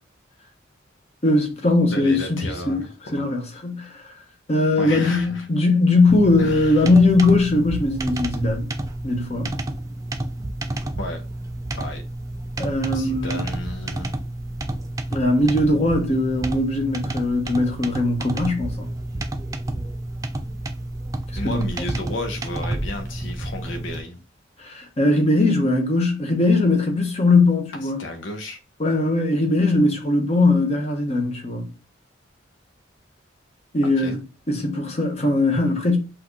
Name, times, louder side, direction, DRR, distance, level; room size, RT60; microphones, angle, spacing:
voice 1, 1.2-2.8 3.1-4.1 4.5-8.7 9.0-9.5 12.6-13.4 15.1-18.9 21.4-21.9 24.6-28.0 28.8-31.7 33.7-34.2 34.5-36.0, left 2 dB, 35° left, 0.9 m, -20 dB
voice 2, 1.9-3.2 4.8-5.5 6.4-6.9 11.0-11.2 11.7-12.0 12.9-14.2 21.4-24.2 27.8-28.6 33.8-34.2, left 1 dB, 75° left, 0.8 m, -32 dB
sound 1, 6.1-24.0, right 1 dB, 15° right, 0.4 m, -30 dB
5.7 x 2.5 x 3.1 m
head